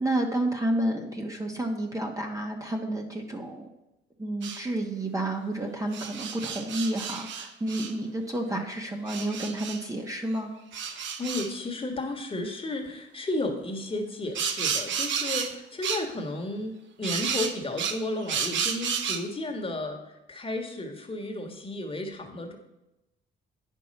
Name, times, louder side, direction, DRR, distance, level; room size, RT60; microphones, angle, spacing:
voice 1, 0.0-3.7 4.2-10.5, right 1 dB, 15° right, 2 dB, 1.2 m, -30 dB
sound 1, 4.4-4.6 5.9-7.9 9.1-9.8 10.7-11.5 14.3-15.5 15.8-16.1 17.0-19.2, right 7 dB, 70° right, 0.9 m, -31 dB
voice 2, 10.9-22.6, left 2 dB, 25° left, 3 dB, 1.6 m, -33 dB
9.2 x 5.6 x 5.3 m, 0.94 s
cardioid pair, 90°, 20 cm